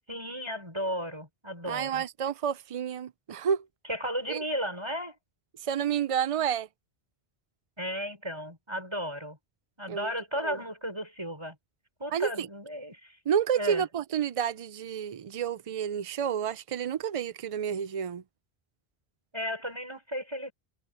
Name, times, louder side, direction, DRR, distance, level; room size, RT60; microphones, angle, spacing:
voice 1, 0.1-2.0 3.9-5.2 7.8-9.4 9.8-11.6 12.0-13.2 13.5-13.9 19.3-20.5, equal, 25° right, 6.2 m, -34 dB
voice 2, 1.7-3.6 4.3-4.4 5.6-6.7 9.9-10.1 10.4-10.6 12.1-12.5 13.3-18.2, right 8 dB, 55° right, 0.3 m, -30 dB
omnidirectional pair, 1.1 m